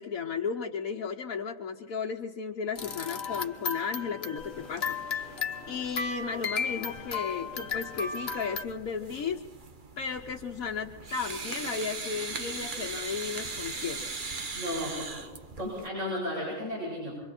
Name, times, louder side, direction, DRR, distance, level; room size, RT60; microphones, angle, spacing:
voice 1, 0.0-5.2 5.7-9.4 10.0-14.1, left 6 dB, 75° left, 0 dB, 1.4 m, -34 dB
sound 1, 2.8-8.6, left 5 dB, 45° left, 1.3 m, -34 dB
sound 2, 4.4-15.9, right 3 dB, 40° right, 1.3 m, -40 dB
voice 2, 14.5-15.2 15.6-17.2, left 1 dB, 55° right, -6 dB, 8.3 m, -34 dB
27.5 x 23.5 x 4.4 m, 1.2 s
omnidirectional pair, 1.5 m